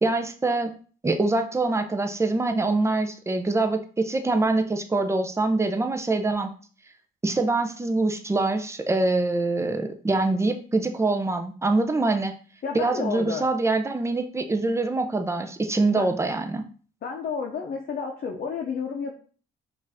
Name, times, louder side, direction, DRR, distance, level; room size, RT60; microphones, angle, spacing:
voice 1, 0.0-0.7 1.0-6.5 7.2-12.3 12.7-16.6, right 2 dB, 15° right, 6 dB, 0.6 m, -24 dB
voice 2, 12.6-13.4 15.9-16.2 17.0-19.1, left 5 dB, 50° left, 0 dB, 0.7 m, -31 dB
5.1 x 2.6 x 3.5 m, 0.41 s
cardioid pair, 90°, 20 cm